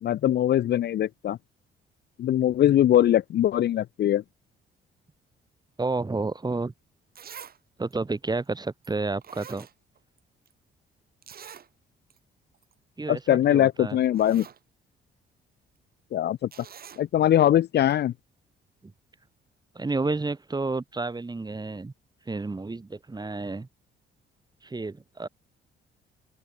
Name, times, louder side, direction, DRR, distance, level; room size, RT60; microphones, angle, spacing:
voice 1, 0.0-1.4 2.2-4.2 13.1-14.5 16.1-16.5 17.0-18.1, left 11 dB, 60° left, 0.5 m, -22 dB
voice 2, 5.8-6.7 7.8-9.7 13.0-14.0 19.7-21.9 22.3-23.7 24.6-25.3, right 3 dB, 20° right, 2.5 m, -30 dB
Zipper (clothing), 7.2-7.6 7.9-8.0 8.8-8.9 9.2-10.2 10.5-10.6 11.2-11.7 12.1-12.2 12.5-12.7 13.6-13.7 14.0-14.6 16.5-17.0 17.9-18.0, right 8 dB, 50° right, 1.7 m, -45 dB
open air
cardioid pair, 90°, 20 cm